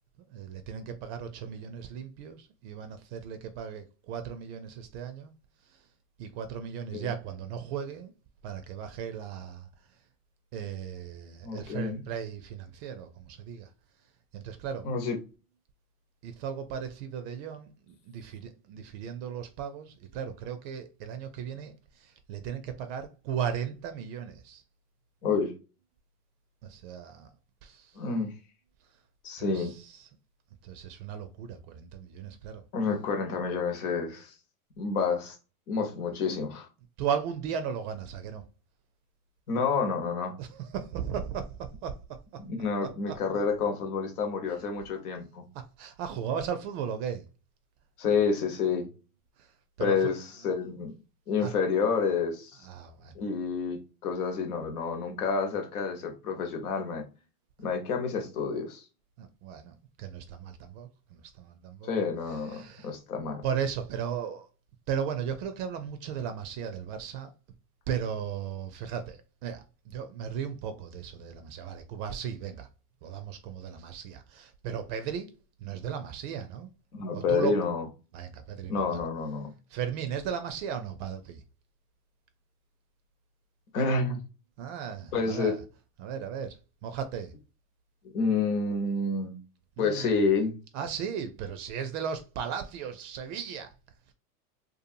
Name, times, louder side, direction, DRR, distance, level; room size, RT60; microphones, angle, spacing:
voice 1, 0.3-5.3 5.6-5.9 6.2-8.1 8.4-9.7 10.5-13.7 14.3-14.9 16.2-24.6 26.6-27.3 27.6-28.0 29.4-30.1 30.6-32.6 37.0-38.4 40.4-42.2 42.8-43.1 44.5-44.6 45.5-47.3 49.4-49.5 49.8-50.2 50.4-50.5 51.4-51.5 52.6-53.1 59.2-61.9 62.3-62.9 63.4-64.5 64.9-67.3 67.9-72.7 73.0-75.3 75.6-76.7 77.1-77.6 78.1-79.0 79.7-81.4 84.6-85.6 86.0-87.3 89.8-90.3 90.7-93.7 94.1-94.2, right 8 dB, 50° right, 0.5 m, -36 dB
voice 2, 11.4-12.0 14.8-15.2 25.2-25.5 27.9-28.3 29.2-29.7 32.7-34.3 34.8-35.4 35.7-36.7 39.5-40.3 42.4-45.4 48.0-48.9 49.8-50.9 51.3-52.6 53.1-57.0 57.6-58.9 61.8-63.4 76.9-77.9 78.7-79.5 83.7-84.2 85.1-85.6 88.0-89.3 89.8-90.5, left 5 dB, 75° left, 1.1 m, -29 dB
2.6 x 2.4 x 2.6 m
hypercardioid pair, 105°, 44 cm